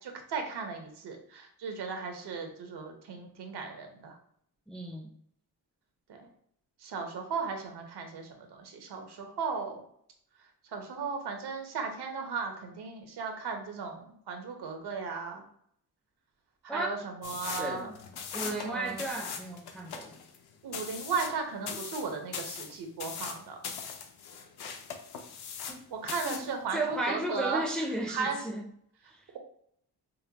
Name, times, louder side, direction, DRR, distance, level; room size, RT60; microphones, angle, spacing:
voice 1, 0.0-4.2 6.1-6.3 6.8-9.8 10.7-15.4 16.6-17.9 18.5-19.1 20.6-23.6 25.9-27.6 28.1-28.4, right 5 dB, 85° right, 0.9 m, -36 dB
voice 2, 4.7-5.1 16.7-16.9 17.6-18.0 18.3-20.2 25.7-25.9 26.2-28.6, right 1 dB, ahead, 0.4 m, -34 dB
sound 1, 17.2-25.8 26.1-26.5, left 6 dB, 75° left, 0.6 m, -40 dB
5.3 x 2.2 x 2.8 m
wide cardioid pair, 140°, 39 cm